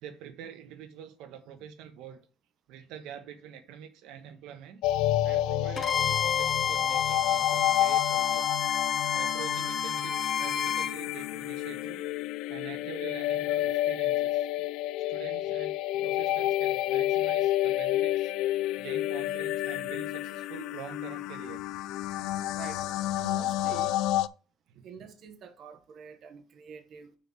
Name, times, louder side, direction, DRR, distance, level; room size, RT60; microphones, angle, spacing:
voice 1, 0.0-2.2 2.7-4.8 5.2-8.5 9.1-12.0 12.5-14.5 15.1-21.7 24.7-24.9, right 8 dB, 85° right, 1.2 m, -46 dB
sound 1, 4.8-24.3, left 14 dB, 80° left, 0.3 m, -30 dB
Bowed string instrument, 5.8-10.9, left 7 dB, 30° left, 0.7 m, -29 dB
voice 2, 23.1-24.0 24.8-27.2, right 6 dB, 45° right, 1.1 m, -46 dB
6.3 x 4.8 x 6.0 m
cardioid pair, 160°, 0 cm